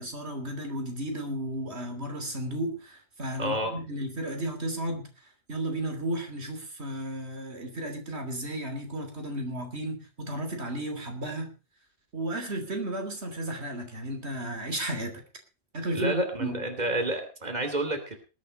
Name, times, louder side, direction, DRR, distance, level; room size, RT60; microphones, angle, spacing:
voice 1, 0.0-5.1 5.5-11.5 12.1-15.2 15.7-16.6, right 1 dB, 85° right, 5 dB, 3.3 m, -33 dB
voice 2, 3.4-3.7 15.9-18.2, right 1 dB, 40° right, 5 dB, 3.0 m, -29 dB
20.0 x 8.4 x 5.3 m, 0.33 s
omnidirectional pair, 1.1 m